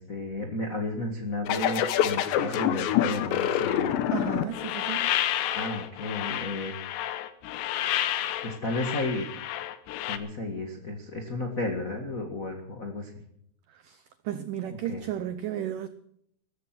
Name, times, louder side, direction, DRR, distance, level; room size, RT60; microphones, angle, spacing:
voice 1, 0.0-4.0 5.5-6.7 7.8-8.0 8.4-9.3 10.1-13.1 14.7-15.0, left 2 dB, 65° left, 2 dB, 0.8 m, -33 dB
sound 1, 1.5-10.2, left 11 dB, 85° left, 3.3 m, -28 dB
voice 2, 4.1-5.1 13.7-15.9, right 10 dB, 85° right, 12 dB, 1.8 m, -34 dB
16.5 x 14.0 x 6.0 m, 0.71 s
omnidirectional pair, 4.9 m